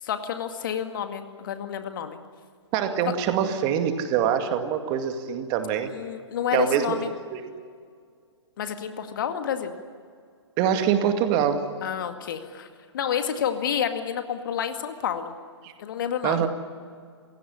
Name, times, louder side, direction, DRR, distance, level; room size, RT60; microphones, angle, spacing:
voice 1, 0.0-2.2 3.1-3.2 5.8-7.1 8.6-9.7 11.8-12.7 12.9-15.3 15.8-16.5, left 8 dB, 45° left, 7 dB, 2.1 m, -29 dB
voice 2, 2.7-5.9 6.5-7.0 7.3-7.5 10.6-11.7 15.6-15.7 16.2-16.5, right 9 dB, 30° right, 7 dB, 2.2 m, -24 dB
28.0 x 17.0 x 10.0 m, 2.1 s
figure-of-eight pair, 120°, 15 cm